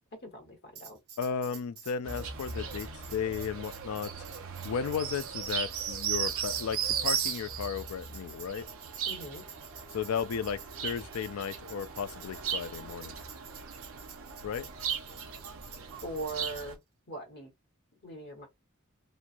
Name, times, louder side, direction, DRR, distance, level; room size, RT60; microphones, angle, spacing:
voice 1, 0.2-1.0 9.1-9.4 16.0-16.8 17.1-17.5 18.0-18.5, right 2 dB, 50° left, 1.2 m, -40 dB
Tambourine, 0.8-16.7, right 8 dB, 85° right, 1.1 m, -50 dB
voice 2, 1.2-4.1 4.6-8.7 9.9-13.2 14.4-14.7, left 7 dB, 75° left, 0.4 m, -34 dB
sound 1, 2.0-16.7, right 7 dB, 65° right, 0.6 m, -37 dB
3.0 x 2.3 x 2.5 m
head